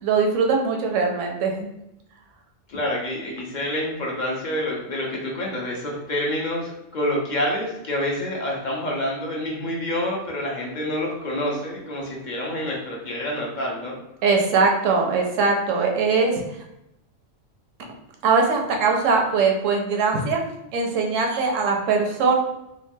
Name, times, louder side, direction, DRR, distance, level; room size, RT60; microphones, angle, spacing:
voice 1, 0.0-1.7 14.2-16.4 18.2-20.4 20.7-22.3, right 4 dB, 80° right, 1 dB, 0.9 m, -21 dB
voice 2, 2.7-13.9, left 1 dB, 55° left, -2 dB, 0.5 m, -27 dB
2.9 x 2.2 x 2.6 m, 0.84 s
omnidirectional pair, 1.3 m